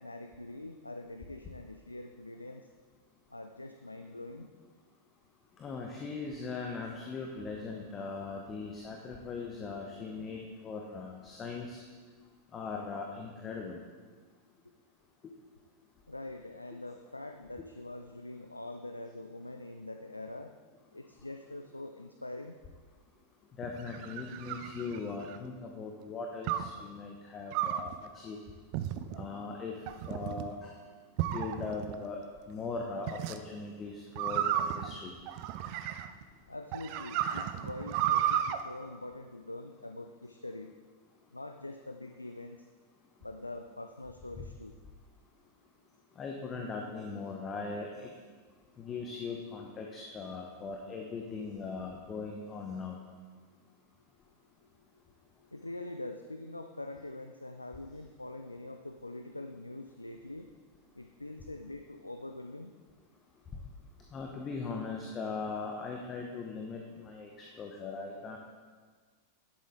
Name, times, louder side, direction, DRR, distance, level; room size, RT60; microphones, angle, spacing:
voice 1, 0.0-2.7 3.3-4.5 12.2-12.3 16.1-20.5 20.9-22.5 36.5-40.7 41.3-42.7 43.2-44.8 54.6-54.7 55.4-60.5 60.9-62.7, left 2 dB, 85° left, 6 dB, 0.4 m, -44 dB
voice 2, 5.6-11.8 12.5-13.8 15.2-15.3 23.6-28.4 29.2-29.7 30.1-30.7 31.3-35.1 46.2-48.1 48.8-53.0 64.1-68.4, left 4 dB, 25° left, 1 dB, 1.0 m, -40 dB
sound 1, 23.6-25.5 26.5-26.8 27.5-27.9 28.7-29.3 29.9-30.5 31.2-32.0 33.1-33.4 34.2-36.2 36.7-38.6, right 10 dB, 45° right, 0.5 m, -33 dB
11.0 x 7.5 x 3.7 m, 1.5 s
figure-of-eight pair, 90°, 0 cm